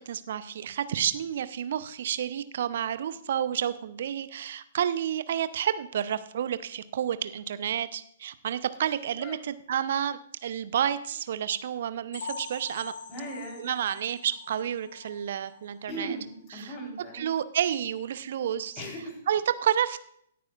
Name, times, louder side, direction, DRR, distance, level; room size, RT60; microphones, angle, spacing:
voice 1, 0.1-12.9 13.6-16.2 16.5-18.8 19.3-20.0, right 9 dB, 55° right, 14 dB, 0.7 m, -30 dB
sound 1, 12.1-15.8 16.1-16.3 16.7-16.8 17.2-17.3, left 4 dB, 50° left, 3.4 m, -43 dB
voice 2, 13.1-13.7 15.9-17.3 18.8-19.2, right 1 dB, 25° left, 0 dB, 4.1 m, -38 dB
17.0 x 9.4 x 2.5 m, 0.68 s
figure-of-eight pair, 115°, 0 cm